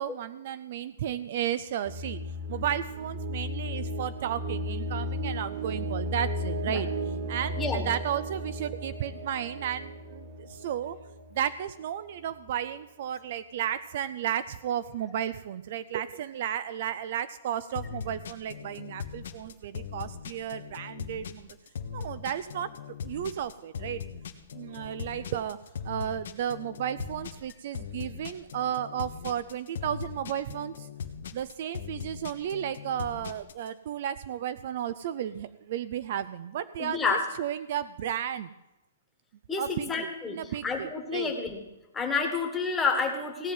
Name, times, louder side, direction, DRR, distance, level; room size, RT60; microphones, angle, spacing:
voice 1, 0.0-2.2 2.5-6.9 7.3-11.0 11.3-21.6 21.9-22.7 23.0-24.0 24.5-30.9 31.3-38.5 39.6-41.3, right 10 dB, 40° right, 15 dB, 0.4 m, -33 dB
sound 1, 1.8-11.7, equal, 60° right, 2.7 m, -35 dB
voice 2, 7.6-7.9 36.8-37.2 39.5-41.6 41.9-43.5, left 5 dB, 5° left, 3 dB, 1.5 m, -29 dB
sound 2, 17.7-33.7, left 7 dB, 65° left, 1.3 m, -39 dB
16.5 x 5.6 x 9.3 m, 0.97 s
hypercardioid pair, 175°, 0 cm